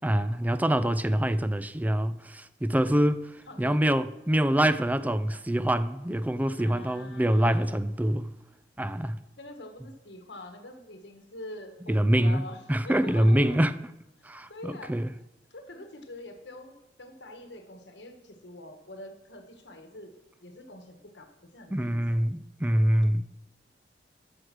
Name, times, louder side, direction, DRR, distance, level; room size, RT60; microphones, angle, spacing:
voice 1, 0.0-8.3 8.8-9.2 11.9-12.4 12.7-13.7 14.2-15.1 21.7-23.2, right 1 dB, 10° right, 0.4 m, -25 dB
voice 2, 3.5-3.8 6.6-7.7 9.4-13.6 14.5-14.9 15.5-20.1 20.4-22.0, left 1 dB, 75° left, 1.6 m, -45 dB
12.5 x 6.5 x 6.1 m
head